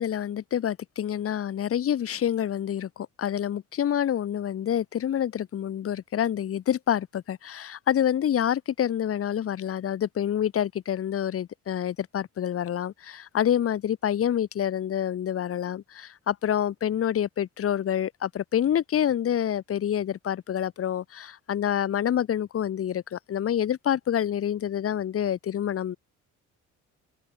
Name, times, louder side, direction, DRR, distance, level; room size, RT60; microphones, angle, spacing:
voice 1, 0.0-26.0, left 10 dB, 50° left, 0.9 m, -27 dB
open air
cardioid pair, 90°, 30 cm